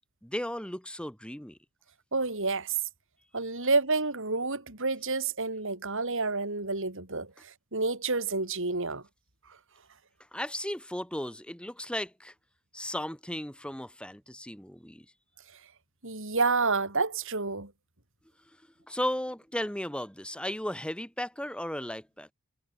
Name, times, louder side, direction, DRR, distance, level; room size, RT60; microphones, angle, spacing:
voice 1, 0.2-1.6 10.3-12.3 12.7-15.1 18.9-22.3, left 1 dB, 5° left, 5.5 m, -35 dB
voice 2, 2.1-2.7 3.3-9.0 16.0-17.7, right 3 dB, 60° right, 5.1 m, -29 dB
head